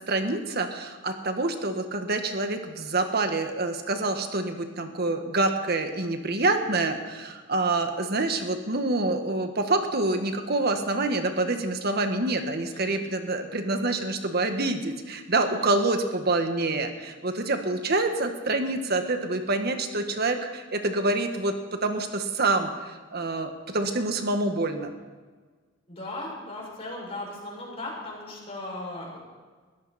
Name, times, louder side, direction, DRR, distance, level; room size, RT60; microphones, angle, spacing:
voice 1, 0.0-24.9, right 2 dB, 55° right, 6 dB, 1.7 m, -27 dB
voice 2, 12.7-13.1 15.4-15.7 25.9-29.2, left 2 dB, 30° left, -3 dB, 6.5 m, -37 dB
21.0 x 14.5 x 4.4 m, 1.4 s
head